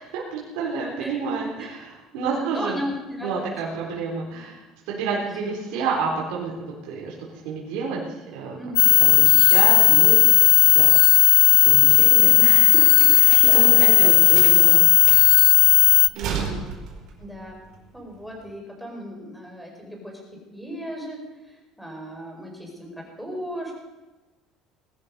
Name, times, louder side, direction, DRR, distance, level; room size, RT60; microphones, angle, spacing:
voice 1, 0.1-2.8 3.2-4.6 4.9-6.5 6.9-7.1 7.4-8.0 8.3-8.6 8.8-11.3 11.6-14.8 16.1-16.7, right 5 dB, 85° right, -4 dB, 4.1 m, -30 dB
voice 2, 2.2-3.6 3.9-4.0 4.9-5.2 8.6-8.8 13.3-14.1 14.6-14.7 17.2-17.6 17.9-20.2 20.5-21.2 21.5-23.7, equal, ahead, 0 dB, 4.8 m, -36 dB
sound 1, 8.8-16.1, left 27 dB, 90° left, 0.5 m, -14 dB
sound 2, 11.7-18.5, right 6 dB, 55° right, 4.8 m, -36 dB
20.0 x 13.0 x 5.4 m, 1.1 s
cardioid pair, 150°, 0 cm